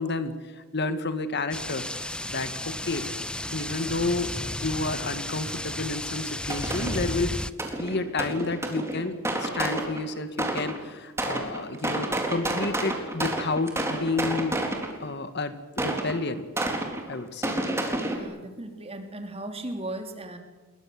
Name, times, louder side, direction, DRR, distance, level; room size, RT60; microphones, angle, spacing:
voice 1, 0.0-3.1 3.5-7.4 7.7-14.6 15.0-16.5 17.1-17.6, left 3 dB, 55° left, 10 dB, 1.9 m, -30 dB
sound 1, 1.5-7.5, left 1 dB, 5° left, 0.7 m, -33 dB
sound 2, 6.5-7.2 7.6-10.8 11.2-15.1 15.8-18.2, right 1 dB, 15° right, 3.9 m, -30 dB
voice 2, 18.0-20.4, right 1 dB, 30° right, 6 dB, 3.3 m, -36 dB
29.5 x 22.5 x 7.8 m, 1.2 s
head